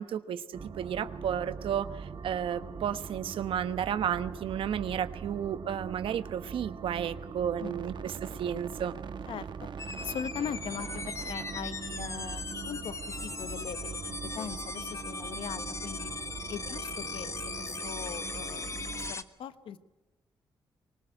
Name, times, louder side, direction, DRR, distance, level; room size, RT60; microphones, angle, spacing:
voice 1, 0.0-8.9, right 9 dB, 80° right, 12 dB, 1.1 m, -33 dB
sound 1, 0.5-19.1, right 6 dB, 60° right, 1.2 m, -42 dB
voice 2, 7.6-7.9 9.3-9.7 10.0-16.1 16.5-17.3 17.6-19.8, left 8 dB, 80° left, 13 dB, 1.1 m, -40 dB
sound 2, 9.8-19.2, left 3 dB, 35° left, 1.4 m, -39 dB
24.0 x 20.5 x 10.0 m, 1.1 s
cardioid pair, 65°, 9 cm